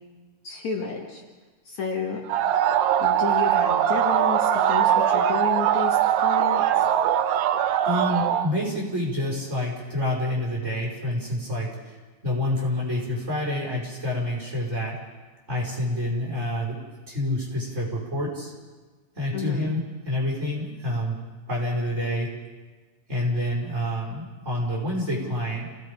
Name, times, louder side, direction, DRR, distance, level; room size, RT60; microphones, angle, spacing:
voice 1, 0.4-1.2 1.6-2.2 3.0-6.9 19.3-19.7, left 6 dB, 55° left, -1 dB, 3.1 m, -31 dB
sound 1, 2.3-8.5, right 10 dB, 80° right, 2.5 m, -21 dB
voice 2, 7.8-15.0 15.5-18.5 19.1-21.2 21.5-22.3 23.1-25.7, left 1 dB, 20° right, -4 dB, 5.5 m, -28 dB
28.5 x 18.0 x 5.3 m, 1.3 s
omnidirectional pair, 4.1 m